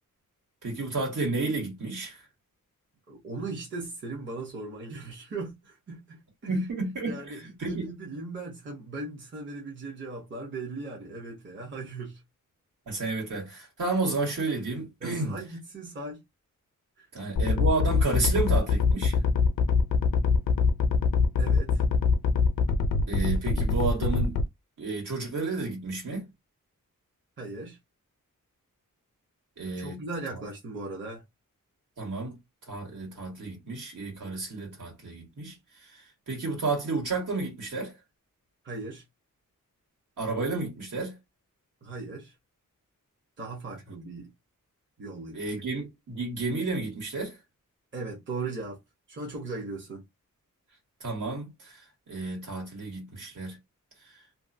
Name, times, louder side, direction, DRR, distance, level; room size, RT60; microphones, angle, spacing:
voice 1, 0.6-2.2 6.5-7.9 12.9-15.4 17.1-19.2 23.1-24.4 24.8-26.3 29.6-30.0 32.0-32.4 32.7-38.0 40.2-41.1 45.3-47.4 51.0-53.6 54.0-54.2, right 3 dB, 70° right, 1.6 m, -31 dB
voice 2, 3.1-6.5 7.0-12.2 15.0-16.2 17.0-17.1 21.4-21.8 27.4-27.8 29.8-31.2 38.6-39.0 41.8-42.3 43.4-44.3 45.0-45.6 47.9-48.8 49.1-50.0, right 3 dB, 35° right, 0.8 m, -38 dB
sound 1, 17.4-24.4, left 5 dB, 80° left, 0.5 m, -23 dB
2.6 x 2.2 x 2.6 m
wide cardioid pair, 180°, 33 cm